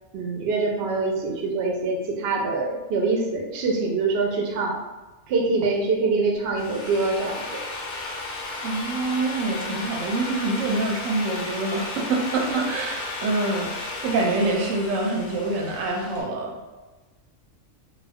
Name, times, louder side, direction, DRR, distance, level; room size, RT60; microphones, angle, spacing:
voice 1, 0.1-4.8 5.3-7.6, right 3 dB, 65° right, 0 dB, 0.7 m, -24 dB
Drill, 6.4-16.2, left 2 dB, 55° left, 0.6 m, -34 dB
voice 2, 8.6-16.6, right 2 dB, 85° right, 1 dB, 1.0 m, -26 dB
2.3 x 2.2 x 3.3 m, 1.2 s
omnidirectional pair, 1.3 m